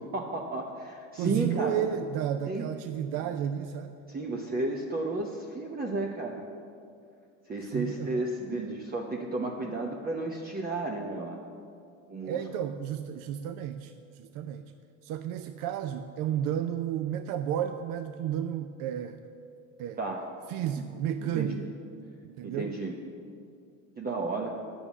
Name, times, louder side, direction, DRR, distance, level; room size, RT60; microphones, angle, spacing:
voice 1, 0.0-1.9 2.5-2.7 4.1-6.4 7.5-11.4 12.1-12.4 20.0-20.2 20.6-20.9 21.2-21.6 22.4-23.0 24.0-24.6, right 2 dB, 25° right, 0 dB, 0.9 m, -33 dB
voice 2, 1.2-3.9 7.7-8.3 12.3-14.7 15.0-19.2 19.8-20.0 20.5-21.6 22.2-22.7, right 10 dB, 60° right, 9 dB, 0.5 m, -32 dB
8.9 x 7.1 x 7.2 m, 2.4 s
supercardioid pair, 100°, 38 cm